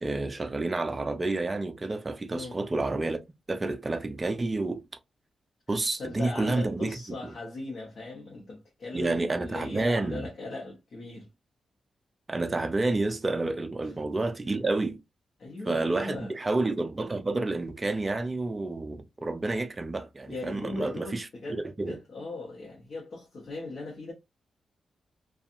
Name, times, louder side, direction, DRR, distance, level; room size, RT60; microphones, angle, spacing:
voice 1, 0.0-3.2 3.5-4.8 5.7-7.3 8.9-10.3 12.3-15.0 15.7-22.0, right 2 dB, 20° right, 0.4 m, -29 dB
voice 2, 6.0-11.3 13.8-13.9 15.4-16.3 20.3-21.6 21.9-24.1, left 2 dB, 50° left, 0.9 m, -39 dB
2.7 x 2.3 x 2.5 m
wide cardioid pair, 135°, 0 cm